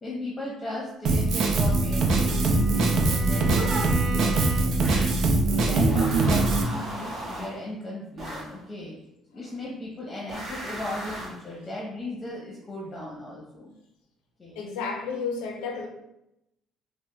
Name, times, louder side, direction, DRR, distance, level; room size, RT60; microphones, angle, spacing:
voice 1, 0.0-4.8 5.5-9.0 9.3-13.7 14.4-14.6, left 1 dB, 25° left, -3 dB, 0.8 m, -37 dB
Drum kit, 1.0-6.6, right 3 dB, 65° right, 0.5 m, -22 dB
Bowed string instrument, 1.2-5.0, right 2 dB, ahead, 1.0 m, -38 dB
sound 1, 4.8-5.2 5.9-7.7 8.2-8.6 10.3-11.5, right 1 dB, 40° right, 1.1 m, -37 dB
voice 2, 14.6-15.9, left 5 dB, 85° left, 2 dB, 0.5 m, -31 dB
4.9 x 2.1 x 2.3 m, 0.84 s
supercardioid pair, 75°, 0 cm